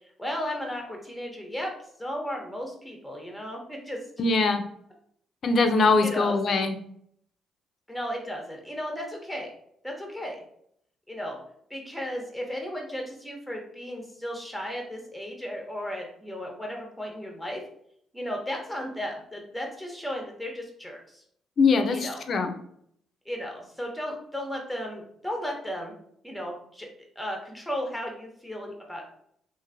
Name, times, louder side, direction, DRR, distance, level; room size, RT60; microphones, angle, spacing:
voice 1, 0.2-1.7 2.0-4.0 6.0-6.4 7.9-9.5 9.8-10.4 11.1-11.4 11.7-17.6 18.1-21.2 21.9-22.2 23.3-25.9 26.2-26.9 27.2-29.1, equal, ahead, 1 dB, 0.9 m, -35 dB
voice 2, 4.2-4.6 5.4-6.7 21.6-22.5, left 4 dB, 55° left, 6 dB, 0.4 m, -22 dB
2.9 x 2.5 x 2.5 m, 0.68 s
cardioid pair, 90°, 0 cm